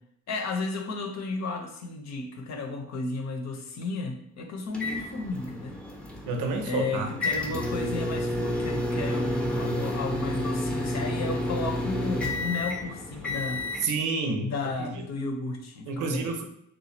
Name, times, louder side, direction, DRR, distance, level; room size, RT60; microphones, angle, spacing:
voice 1, 0.3-5.8 6.6-13.6 14.4-16.3, left 3 dB, 60° left, 5 dB, 0.7 m, -33 dB
sound 1, 4.7-13.8, left 1 dB, 5° left, 0.6 m, -30 dB
voice 2, 6.3-7.1 13.8-14.5 14.8-15.0 15.9-16.4, right 4 dB, 85° right, 5 dB, 0.7 m, -29 dB
3.0 x 2.3 x 4.2 m, 0.73 s
cardioid pair, 90°, 30 cm